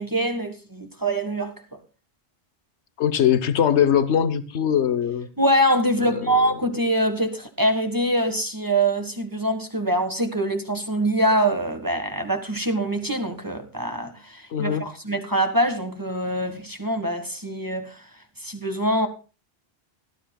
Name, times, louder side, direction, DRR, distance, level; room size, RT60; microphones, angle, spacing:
voice 1, 0.0-1.8 5.4-17.9 18.4-19.1, right 1 dB, 20° right, 1.6 m, -24 dB
voice 2, 3.0-5.3 6.1-6.3 14.5-14.8, left 9 dB, 75° left, 1.3 m, -21 dB
18.0 x 13.0 x 2.3 m
omnidirectional pair, 1.2 m